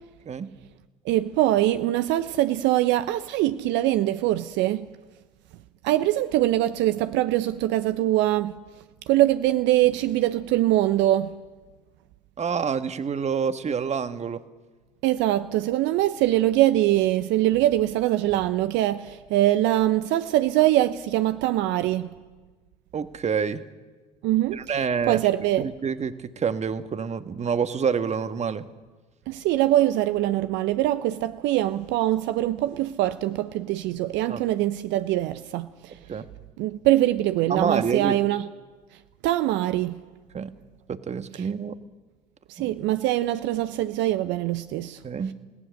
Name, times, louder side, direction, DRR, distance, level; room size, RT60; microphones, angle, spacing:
voice 1, 1.0-4.9 5.8-8.6 9.1-11.4 15.0-22.1 24.2-25.7 29.3-36.0 36.6-38.4 39.2-40.0 41.3-41.5 42.5-45.0, right 14 dB, 60° right, 0.8 m, -23 dB
voice 2, 12.4-14.4 22.9-23.6 24.5-25.2 25.6-28.7 34.3-34.4 36.1-36.3 37.5-38.2 40.3-40.5 40.9-41.8 42.6-42.7 45.0-45.3, right 6 dB, 30° right, 1.4 m, -27 dB
28.5 x 18.0 x 6.6 m
hypercardioid pair, 65°, 21 cm